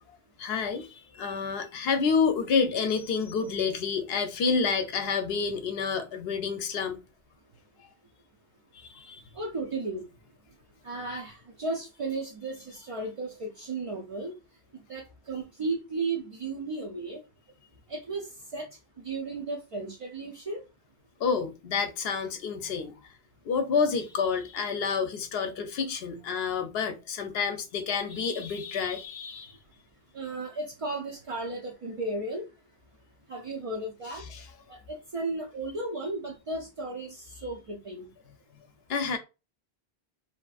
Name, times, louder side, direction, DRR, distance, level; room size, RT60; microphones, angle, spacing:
voice 1, 0.4-7.0 8.7-9.2 21.2-22.9 23.5-29.5 34.2-34.5 38.9-39.2, left 5 dB, 75° left, 0.8 m, -29 dB
voice 2, 9.3-10.0 10.8-14.3 14.9-17.2 17.9-18.7 19.0-20.6 30.1-32.5 33.3-34.2 34.7-38.1, right 2 dB, 50° right, 0.4 m, -34 dB
2.8 x 2.4 x 2.3 m
omnidirectional pair, 1.0 m